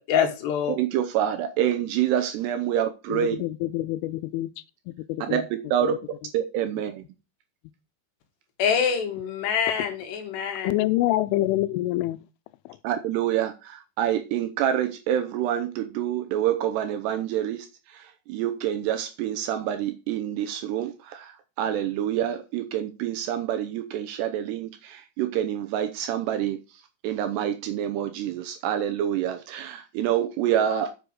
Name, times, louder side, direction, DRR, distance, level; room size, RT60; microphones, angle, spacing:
voice 1, 0.0-0.8 8.6-10.7, left 7 dB, 65° left, 3.6 m, -25 dB
voice 2, 0.8-3.4 5.2-5.4 5.7-5.9 6.3-7.0 12.8-26.6 27.0-30.9, right 10 dB, 75° right, 2.6 m, -27 dB
voice 3, 3.1-4.5 4.9-5.5 5.8-6.0 10.6-12.2 12.7-12.8, left 16 dB, 85° left, 3.2 m, -26 dB
8.1 x 7.0 x 6.4 m
omnidirectional pair, 5.5 m